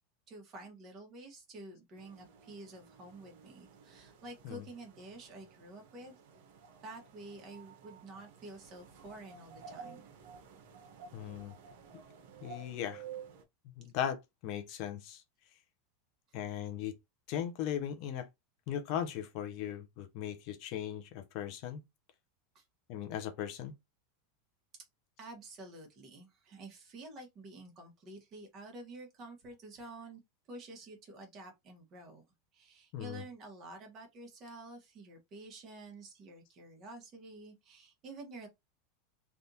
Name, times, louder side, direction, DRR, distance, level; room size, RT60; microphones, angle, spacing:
voice 1, 0.3-6.2 6.8-10.0 22.5-22.6 25.2-30.2 30.5-32.2 32.5-38.5, right 2 dB, 30° right, 1.3 m, -49 dB
sound 1, 2.0-13.4, right 6 dB, 70° right, 0.9 m, -53 dB
voice 2, 11.1-11.5 12.4-13.0 13.8-15.2 16.3-16.9 17.3-18.3 18.7-21.8 22.9-23.7 32.9-33.2, left 9 dB, 50° left, 0.6 m, -38 dB
3.4 x 2.5 x 2.8 m
supercardioid pair, 155°, 0 cm